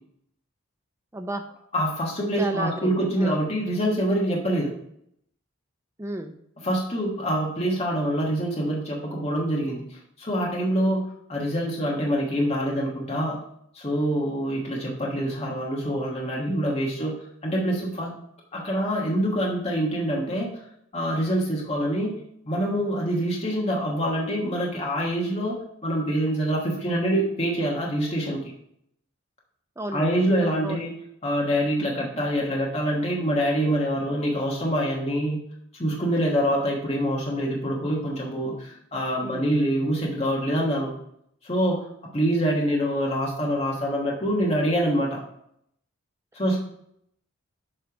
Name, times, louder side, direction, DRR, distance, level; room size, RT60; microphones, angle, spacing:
voice 1, 1.1-1.5 2.4-3.4 6.0-6.3 29.8-30.9 39.2-39.5, right 1 dB, 15° right, 5 dB, 0.4 m, -33 dB
voice 2, 1.7-4.8 6.6-11.0 11.3-13.4 13.7-17.2 17.4-18.1 18.5-20.6 20.9-22.1 22.4-28.5 29.9-30.9 31.2-35.4 35.8-40.9 41.4-41.9 42.1-45.2 46.3-46.6, equal, 30° left, -3 dB, 1.3 m, -25 dB
7.7 x 3.3 x 5.0 m, 0.72 s
head